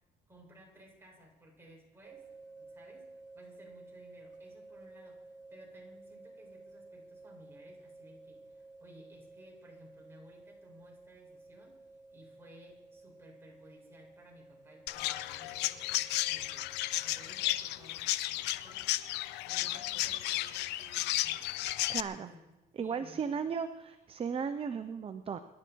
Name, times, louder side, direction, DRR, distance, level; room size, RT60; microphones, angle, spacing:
voice 1, 0.3-11.8 12.1-21.8 22.1-22.4 22.8-23.5, equal, 15° right, -2 dB, 6.9 m, -58 dB
sound 1, 2.0-17.6, right 3 dB, 50° right, 2.8 m, -54 dB
Chirp tweet, 14.9-22.0, left 15 dB, 90° left, 0.7 m, -33 dB
voice 2, 21.9-22.3 22.8-25.4, right 6 dB, 35° right, 10 dB, 0.8 m, -35 dB
25.5 x 11.5 x 4.7 m, 1.1 s
cardioid pair, 110°, 17 cm